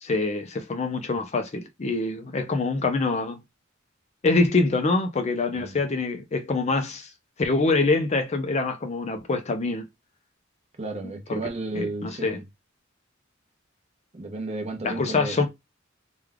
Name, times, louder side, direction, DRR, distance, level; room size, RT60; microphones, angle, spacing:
voice 1, 0.0-3.4 4.2-7.1 7.4-9.9 11.3-11.4 11.8-12.4 14.8-15.5, left 3 dB, 35° left, 0.5 m, -25 dB
voice 2, 10.8-12.5 14.1-15.5, right 2 dB, 35° right, 0.8 m, -33 dB
3.3 x 2.3 x 3.5 m
head